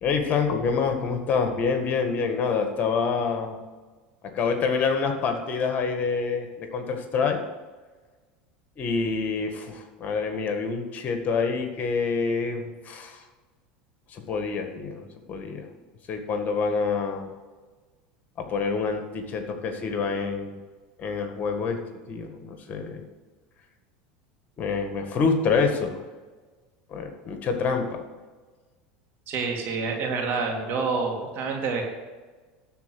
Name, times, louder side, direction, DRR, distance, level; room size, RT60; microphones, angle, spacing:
voice 1, 0.0-3.6 4.3-7.4 8.8-13.2 14.1-15.7 16.1-17.3 18.4-20.6 21.0-21.8 22.1-23.0 24.6-26.1 26.9-28.0, left 5 dB, 40° left, 5 dB, 1.8 m, -27 dB
voice 2, 29.3-31.8, right 4 dB, 50° right, 2 dB, 2.8 m, -27 dB
12.5 x 4.5 x 7.8 m, 1.3 s
hypercardioid pair, 90°, 4 cm